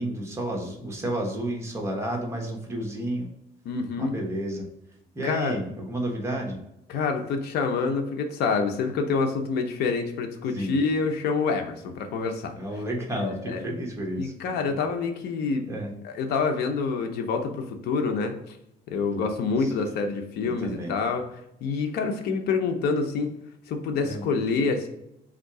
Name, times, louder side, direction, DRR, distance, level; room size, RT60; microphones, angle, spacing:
voice 1, 0.0-3.3 4.0-4.6 5.1-6.6 10.5-10.7 12.5-14.8 15.7-15.9 19.1-19.3 19.6-19.7 20.4-21.0 24.0-24.3, right 1 dB, 15° right, 0 dB, 1.1 m, -31 dB
voice 2, 3.6-4.1 5.2-5.6 6.9-12.5 13.1-13.6 14.2-15.7 16.0-18.6 18.9-21.3 21.6-23.4 23.7-24.9, left 4 dB, 70° left, 5 dB, 0.7 m, -27 dB
3.7 x 2.7 x 4.6 m, 0.80 s
cardioid pair, 110°, 17 cm